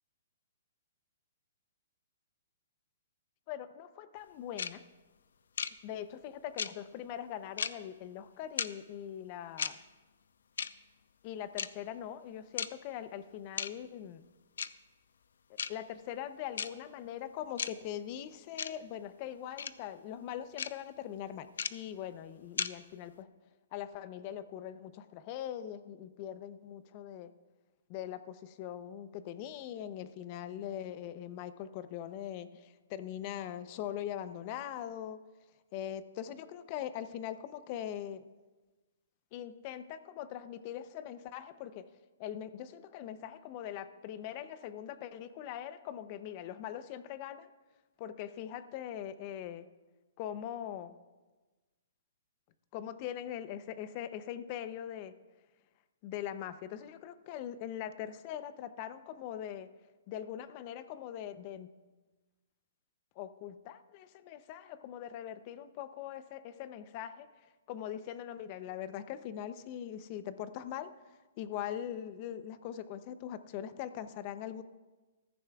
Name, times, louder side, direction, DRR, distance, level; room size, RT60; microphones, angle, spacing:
voice 1, 3.5-4.8 5.8-9.8 11.2-14.2 15.7-23.3 23.7-27.3 27.9-35.2 35.7-38.2 39.3-41.9 42.2-47.5 48.0-49.7 50.2-51.0 52.7-55.1 56.0-59.7 60.1-61.7 63.2-74.6, left 10 dB, 35° left, 13 dB, 0.6 m, -42 dB
sound 1, 4.6-4.7 5.6-5.7 6.6-6.7 7.6-7.7 8.6-8.7 9.6-9.7 10.6-10.7 11.6-11.7 12.6-12.7 13.6-13.7 14.6-14.7 15.6-15.7 16.6-16.7 17.6-17.7 18.6-18.7 19.6-19.7 20.6-20.7 21.6-21.7 22.6-22.7, left 7 dB, 80° left, 0.5 m, -33 dB
15.5 x 14.0 x 2.4 m, 1.2 s
hypercardioid pair, 155°, 0 cm